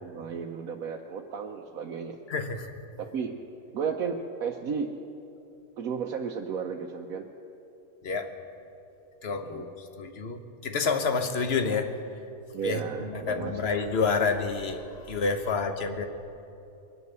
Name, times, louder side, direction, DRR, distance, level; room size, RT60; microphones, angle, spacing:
voice 1, 0.0-2.2 3.1-3.3 3.7-4.9 5.8-7.3 9.4-9.7 12.5-13.6, right 6 dB, 80° right, 2 dB, 1.2 m, -33 dB
voice 2, 2.3-2.7 8.0-8.3 9.2-11.9 12.6-16.1, left 4 dB, 50° left, 7 dB, 1.2 m, -29 dB
22.5 x 8.4 x 6.8 m, 2.8 s
omnidirectional pair, 1.5 m